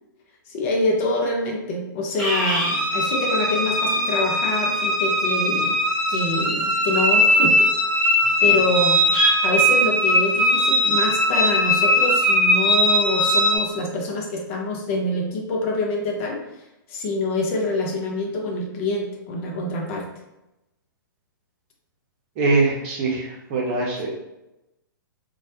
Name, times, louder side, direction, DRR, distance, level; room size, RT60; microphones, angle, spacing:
voice 1, 0.5-5.8 6.1-7.7 8.4-16.4 16.9-20.0, left 2 dB, 40° left, 0 dB, 0.5 m, -25 dB
sound 1, 2.2-13.6, equal, 5° left, 1.0 m, -20 dB
voice 2, 22.4-24.1, right 3 dB, 35° right, -3 dB, 0.8 m, -23 dB
2.3 x 2.0 x 2.8 m, 0.92 s
figure-of-eight pair, 115°, 11 cm